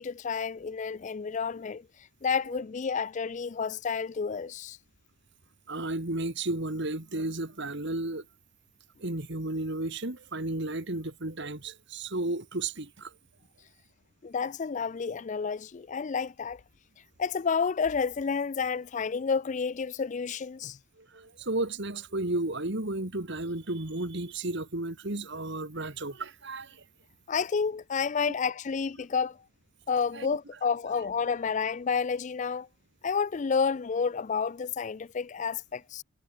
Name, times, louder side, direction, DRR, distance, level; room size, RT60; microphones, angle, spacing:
voice 1, 0.0-1.9 2.2-4.8 14.2-16.6 17.2-20.8 27.3-29.4 29.9-32.7 33.0-36.0, left 5 dB, 35° left, 0.4 m, -30 dB
voice 2, 5.7-8.2 9.0-13.1 21.0-26.8 28.2-28.3 30.1-30.3, right 2 dB, 55° right, 2.3 m, -33 dB
head